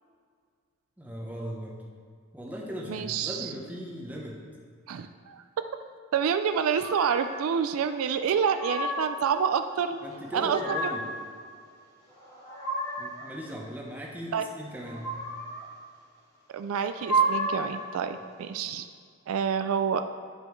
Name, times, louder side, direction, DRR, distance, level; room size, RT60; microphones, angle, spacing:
voice 1, 1.0-1.8 2.3-4.4 10.0-11.1 13.0-15.2, equal, 10° right, -2 dB, 0.9 m, -38 dB
voice 2, 2.9-3.5 4.9-5.4 6.1-10.0 10.3-10.9 14.3-14.4 16.5-18.9 19.3-20.0, right 7 dB, 75° right, 8 dB, 0.3 m, -28 dB
sound 1, 6.8-7.4 8.2-9.2 10.2-11.2 12.1-13.2 14.8-15.6 16.7-17.8, right 2 dB, 15° left, 1.9 m, -31 dB
9.7 x 5.3 x 3.1 m, 2.1 s
head